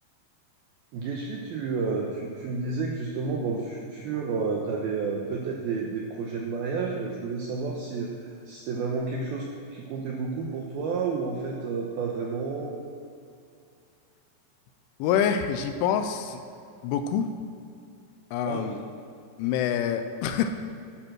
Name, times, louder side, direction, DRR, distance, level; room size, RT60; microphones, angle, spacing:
voice 1, 0.9-12.8 18.4-18.8, right 4 dB, 85° right, 0 dB, 2.2 m, -31 dB
voice 2, 15.0-16.4 16.8-17.3 18.3-18.8 19.4-20.5, left 8 dB, 80° left, 8 dB, 3.1 m, -26 dB
13.0 x 8.9 x 6.2 m, 2.5 s
omnidirectional pair, 5.8 m